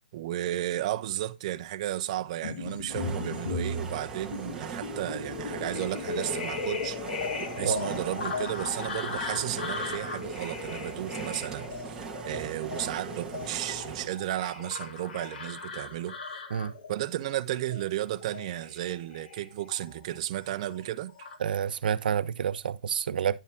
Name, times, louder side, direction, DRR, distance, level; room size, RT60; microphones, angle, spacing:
voice 1, 0.1-7.0 7.6-16.1 16.9-21.1, right 13 dB, 40° right, 1.0 m, -33 dB
sound 1, 2.4-20.2 20.5-21.4, left 4 dB, 75° left, 3.1 m, -37 dB
sound 2, 2.9-14.1, right 5 dB, 10° right, 1.8 m, -40 dB
voice 2, 21.4-23.4, right 8 dB, 70° right, 1.0 m, -28 dB
11.0 x 7.1 x 3.6 m
hypercardioid pair, 165°, 5 cm